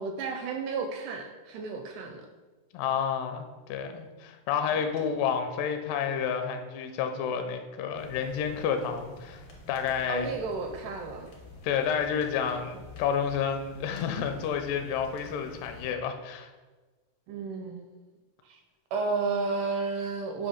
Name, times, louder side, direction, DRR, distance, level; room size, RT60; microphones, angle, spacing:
voice 1, 0.0-2.3 4.7-5.1 10.1-11.3 17.3-17.9 18.5-18.6 18.9-20.5, right 4 dB, 80° right, 5 dB, 1.9 m, -32 dB
voice 2, 2.7-10.3 11.6-16.5, left 7 dB, 80° left, 6 dB, 2.1 m, -30 dB
sound 1, 8.0-15.9, left 2 dB, 60° left, 1.4 m, -48 dB
7.2 x 2.8 x 5.0 m, 1.3 s
omnidirectional pair, 4.0 m